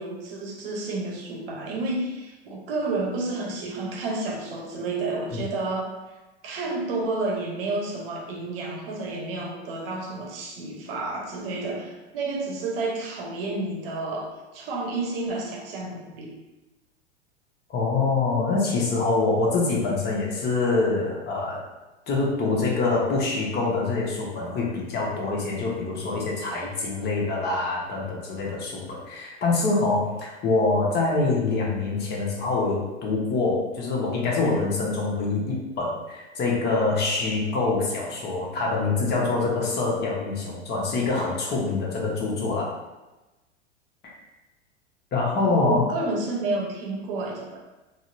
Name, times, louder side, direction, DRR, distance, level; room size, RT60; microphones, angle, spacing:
voice 1, 0.0-5.9 6.4-16.3 45.4-47.6, right 2 dB, 55° right, -1 dB, 0.8 m, -30 dB
voice 2, 17.7-21.6 22.1-42.7 44.0-44.1 45.1-45.9, left 3 dB, 30° left, -3 dB, 0.9 m, -25 dB
3.9 x 2.0 x 2.6 m, 1.1 s
figure-of-eight pair, 85°, 34 cm